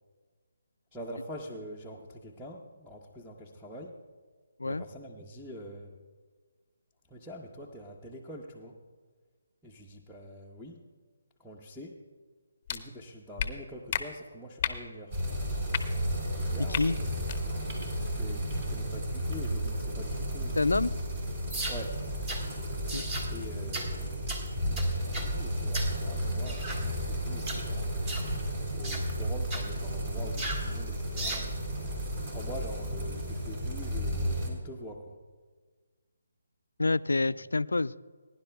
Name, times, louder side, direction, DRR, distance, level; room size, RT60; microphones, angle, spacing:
voice 1, 0.9-3.9 4.6-6.0 7.1-8.7 9.6-10.8 11.4-11.9 12.7-15.1 16.3-16.9 17.2-17.6 18.0-20.6 21.7-22.0 23.3-28.0 28.7-31.6 32.3-35.2 37.3-37.4, equal, ahead, -8 dB, 0.8 m, -45 dB
sound 1, 12.7-12.8 13.4-13.5 13.9-14.0 14.6-14.8 15.7-15.8 16.7-16.8 17.2-17.4, left 8 dB, 35° left, 0.8 m, -31 dB
sound 2, 15.1-34.5, equal, 35° right, 3.3 m, -33 dB
voice 2, 16.6-17.0 20.6-20.9 22.9-23.0 36.8-37.9, left 3 dB, 80° left, 18 dB, 0.3 m, -27 dB
sound 3, 21.5-21.8 22.3-22.4 22.9-23.3 23.7-23.9 24.3-24.4 24.8-25.3 25.7-26.0 26.5-26.8 27.4-27.6 28.1-28.3 28.8-29.1 29.5-29.7 30.4-30.7 31.2-31.5, right 2 dB, 20° right, 1.7 m, -36 dB
20.5 x 11.0 x 2.3 m, 1.5 s
figure-of-eight pair, 150°, 0 cm